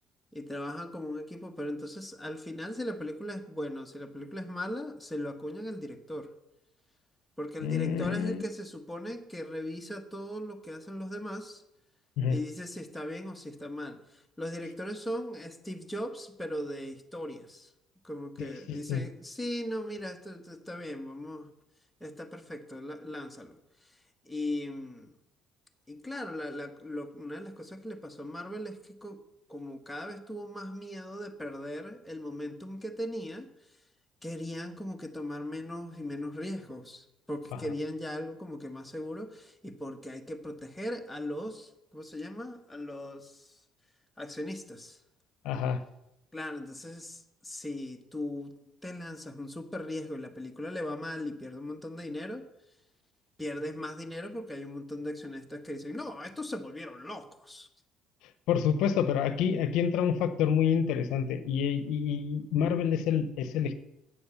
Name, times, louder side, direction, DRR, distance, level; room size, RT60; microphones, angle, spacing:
voice 1, 0.3-6.3 7.4-11.6 12.3-17.7 18.0-21.5 22.0-23.6 24.3-25.1 25.9-29.2 29.5-33.5 34.2-43.5 44.2-45.0 46.3-48.5 48.8-52.5 53.4-57.7, left 1 dB, 5° left, 4 dB, 1.2 m, -38 dB
voice 2, 7.6-8.4 12.2-12.4 18.4-19.0 45.4-45.8 58.5-63.7, left 8 dB, 80° left, 12 dB, 0.7 m, -28 dB
8.6 x 6.9 x 6.9 m, 0.84 s
cardioid pair, 90°, 0 cm